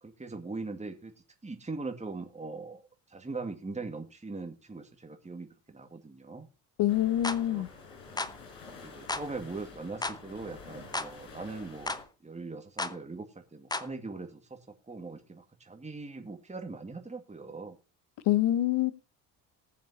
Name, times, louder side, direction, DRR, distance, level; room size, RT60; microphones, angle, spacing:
voice 1, 0.0-1.1 1.4-2.8 3.1-6.5 7.5-7.6 8.8-14.6 14.9-17.8, right 3 dB, 15° right, 2.0 m, -41 dB
voice 2, 6.8-7.7 18.3-18.9, left 13 dB, 60° left, 1.0 m, -25 dB
sound 1, 6.9-12.0, left 4 dB, 85° left, 7.1 m, -49 dB
sound 2, 7.2-7.4 8.2-8.4 9.1-9.3 10.0-10.2 10.9-11.1 11.9-12.0 12.8-13.0 13.7-13.9, left 2 dB, 10° left, 0.8 m, -33 dB
20.0 x 7.2 x 2.8 m
hypercardioid pair, 60°, 47 cm